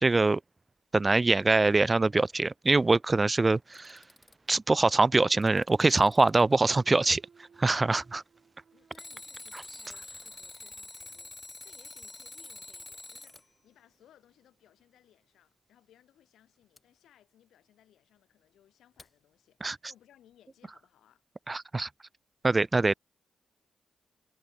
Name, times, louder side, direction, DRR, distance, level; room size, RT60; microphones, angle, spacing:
voice 1, 0.0-0.4 0.9-4.0 4.5-7.2 7.6-8.2 19.6-19.8 21.5-21.9 22.4-22.9, right 3 dB, 30° right, 0.7 m, -24 dB
Alarm, 3.6-4.5 5.2-6.6 8.9-13.4 16.8-16.9 19.0-19.1, left 2 dB, 25° left, 1.0 m, -46 dB
Thump thud, 5.9-9.9 10.4-15.1, right 6 dB, 60° right, 5.7 m, -65 dB
voice 2, 8.7-21.2, left 11 dB, 85° left, 7.4 m, -63 dB
supercardioid pair, 50°, 0 cm